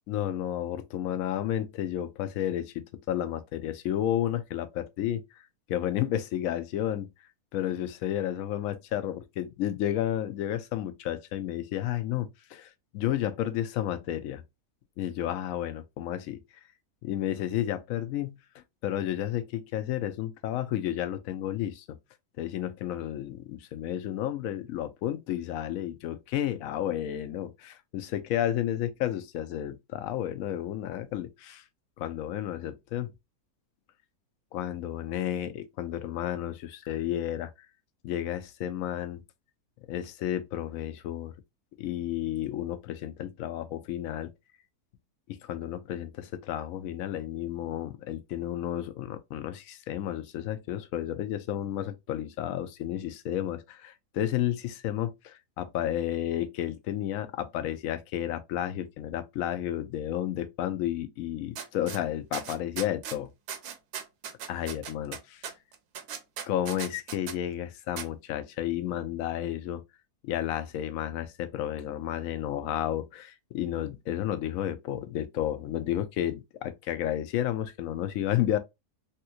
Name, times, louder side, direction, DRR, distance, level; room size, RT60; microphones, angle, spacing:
voice 1, 0.1-5.4 5.7-7.1 7.5-14.4 15.0-16.4 17.0-18.4 18.8-22.0 22.4-31.6 32.0-33.1 34.5-37.5 38.0-39.2 39.9-41.3 41.8-44.3 45.3-63.3 64.5-65.4 66.4-69.8 70.2-78.6, left 11 dB, 70° left, 0.9 m, -32 dB
sound 1, 61.6-62.0 62.3-63.2 63.5-67.4 68.0-68.1, right 8 dB, 75° right, 1.2 m, -38 dB
3.5 x 2.9 x 2.2 m
omnidirectional pair, 1.7 m